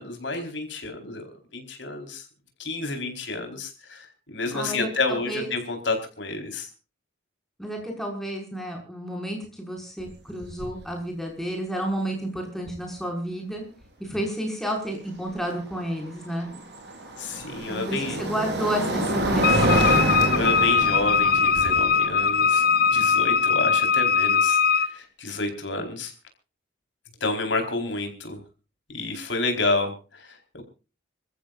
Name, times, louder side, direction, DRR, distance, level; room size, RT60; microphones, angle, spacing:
voice 1, 0.0-2.2 2.6-6.7 17.2-18.2 19.9-22.6 22.9-26.1 27.2-28.4 28.9-30.6, left 3 dB, 70° left, 4 dB, 4.5 m, -30 dB
voice 2, 4.5-5.5 7.6-13.6 14.0-16.5 17.7-20.0, right 1 dB, ahead, 0 dB, 5.8 m, -31 dB
sound 1, 10.0-10.1 10.4-10.8 12.7-12.8 15.8-23.9, right 1 dB, 55° right, 4.6 m, -27 dB
Wind instrument woodwind instrument, 19.4-24.9, left 6 dB, 50° left, 1.0 m, -21 dB
27.0 x 14.5 x 2.6 m, 0.34 s
head